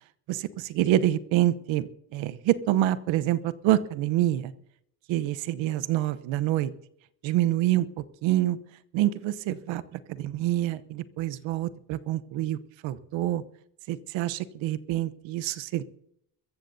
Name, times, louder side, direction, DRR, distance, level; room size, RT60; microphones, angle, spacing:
voice 1, 0.3-4.5 5.1-6.7 7.2-7.9 8.2-8.6 8.9-12.6 12.8-13.4 13.9-15.8, right 13 dB, 75° right, 15 dB, 1.0 m, -26 dB
23.0 x 14.5 x 2.7 m, 0.74 s
supercardioid pair, 65°, 47 cm